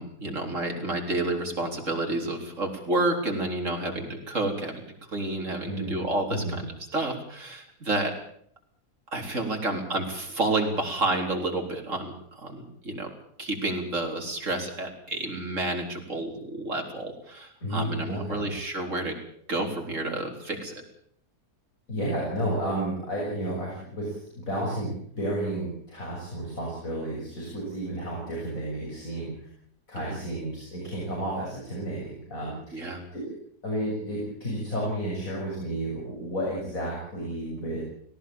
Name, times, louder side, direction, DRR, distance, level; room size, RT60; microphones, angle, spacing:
voice 1, 0.0-4.8 5.1-6.7 6.9-8.1 9.1-13.1 13.4-19.1 19.5-20.8 29.9-30.2 32.7-33.0, right 2 dB, 50° right, 3 dB, 4.4 m, -30 dB
voice 2, 5.7-6.0 6.3-6.6 17.6-18.5 21.9-29.3 29.9-33.4 33.6-37.8, right 1 dB, 55° left, -3 dB, 6.9 m, -32 dB
18.5 x 17.5 x 8.9 m, 0.65 s
omnidirectional pair, 1.7 m